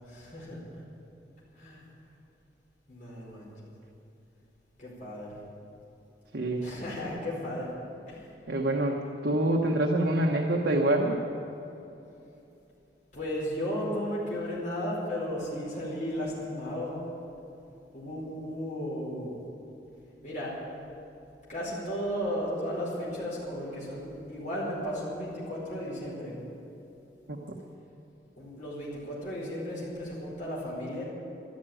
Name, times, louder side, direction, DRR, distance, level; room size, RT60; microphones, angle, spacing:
voice 1, 0.0-0.6 1.6-1.8 2.9-3.5 4.8-5.3 6.6-7.7 8.1-8.3 8.5-8.7 13.1-17.0 17.9-19.3 20.2-20.5 21.5-26.3 28.4-31.0, equal, 45° left, -7 dB, 4.8 m, -34 dB
voice 2, 6.3-6.7 8.5-11.2 27.3-27.4, right 1 dB, 65° right, 0 dB, 1.2 m, -26 dB
13.0 x 12.5 x 9.1 m, 2.9 s
head